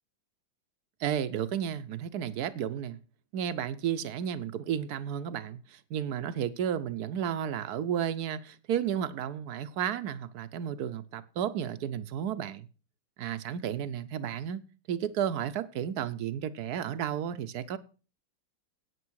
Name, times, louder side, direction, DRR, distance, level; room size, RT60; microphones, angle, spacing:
voice 1, 1.0-3.0 3.3-12.7 13.2-17.8, right 9 dB, 65° right, 1.0 m, -33 dB
9.5 x 8.9 x 6.3 m
omnidirectional pair, 2.2 m